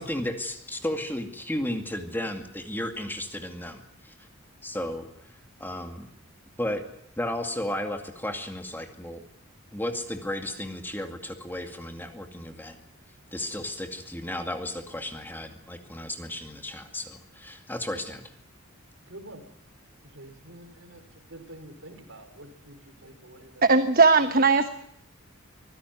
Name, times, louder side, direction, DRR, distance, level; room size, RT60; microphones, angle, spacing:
voice 1, 0.0-4.1 4.6-5.1 5.6-6.1 6.6-6.8 7.2-9.2 9.7-12.8 13.3-18.3, left 1 dB, 10° left, 6 dB, 2.2 m, -34 dB
voice 2, 19.1-19.5 20.0-23.6 24.2-24.3, right 1 dB, 60° right, 7 dB, 4.9 m, -47 dB
voice 3, 23.6-24.7, right 4 dB, 40° right, 9 dB, 1.2 m, -18 dB
25.0 x 16.0 x 9.5 m, 0.71 s
head